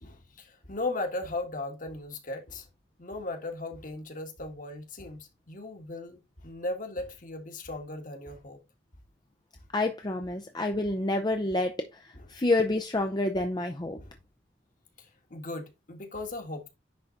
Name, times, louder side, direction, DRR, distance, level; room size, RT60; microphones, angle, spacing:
voice 1, 0.0-2.7 3.0-8.6 12.1-12.3 13.4-13.5 14.0-14.1 15.0-16.7, left 2 dB, 45° left, 1.8 m, -37 dB
voice 2, 9.7-11.7 12.3-14.0, left 2 dB, 25° left, 0.7 m, -28 dB
10.5 x 3.9 x 4.0 m
head